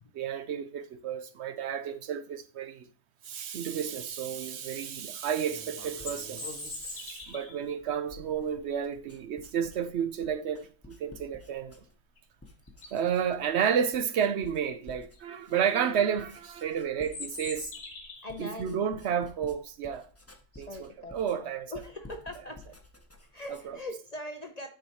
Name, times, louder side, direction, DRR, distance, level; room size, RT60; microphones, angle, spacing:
voice 1, 0.1-2.9 3.2-11.8 12.9-17.7 18.4-20.1 20.6-21.7, right 8 dB, 65° right, 0.7 m, -31 dB
Writing, 5.4-12.1 12.4-13.6 13.9-23.9, left 2 dB, 10° left, 0.8 m, -52 dB
sound 1, 5.8-7.6 12.2-12.3 12.7-13.1 15.1-15.2 15.6-15.9 17.0-18.4, left 4 dB, 65° left, 1.7 m, -42 dB
voice 2, 18.2-18.8 20.5-22.6 23.3-24.7, left 1 dB, 40° left, 0.5 m, -41 dB
10.0 x 4.2 x 4.7 m
omnidirectional pair, 1.6 m